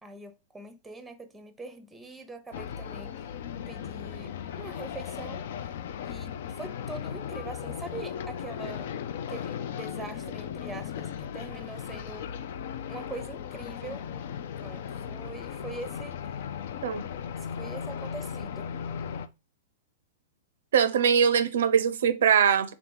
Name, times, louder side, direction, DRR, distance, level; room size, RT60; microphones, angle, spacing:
voice 1, 0.0-3.1 3.7-5.5 6.0-8.9 9.3-12.3 12.9-14.1 14.6-16.3 17.4-18.7, right 3 dB, 5° right, 0.7 m, -43 dB
sound 1, 2.5-19.3, left 8 dB, 65° left, 0.4 m, -37 dB
voice 2, 20.7-22.7, right 7 dB, 75° right, 0.4 m, -22 dB
3.5 x 2.8 x 3.8 m
hypercardioid pair, 115°, 0 cm